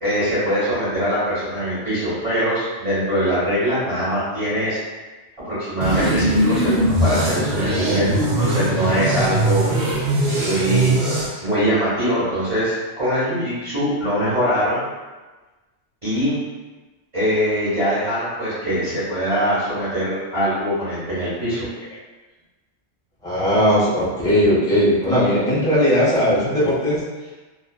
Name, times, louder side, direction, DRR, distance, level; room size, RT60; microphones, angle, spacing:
voice 1, 0.0-4.8 5.4-8.1 8.4-9.6 10.4-11.0 11.3-14.8 16.0-16.4 17.1-21.7, equal, 30° right, -13 dB, 1.1 m, -22 dB
sound 1, 5.8-11.3, right 1 dB, 55° right, 0.6 m, -20 dB
voice 2, 23.2-27.0, equal, 5° left, -8 dB, 0.3 m, -18 dB
2.4 x 2.3 x 2.2 m, 1.2 s
omnidirectional pair, 1.2 m